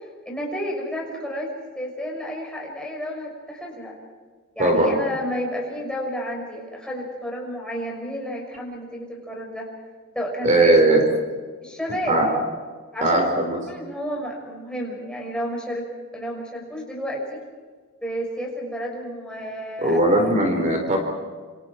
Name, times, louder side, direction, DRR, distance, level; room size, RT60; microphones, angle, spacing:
voice 1, 0.3-4.0 4.5-9.7 10.1-10.8 11.6-12.2 12.9-13.2 13.5-15.9 16.1-17.4 18.0-20.3, equal, 5° left, -2 dB, 6.1 m, -31 dB
voice 2, 4.6-5.0 10.4-11.0 12.1-12.3 13.0-13.6 19.8-21.0, right 1 dB, 35° right, 3 dB, 4.4 m, -18 dB
27.5 x 27.0 x 4.6 m, 1.5 s
head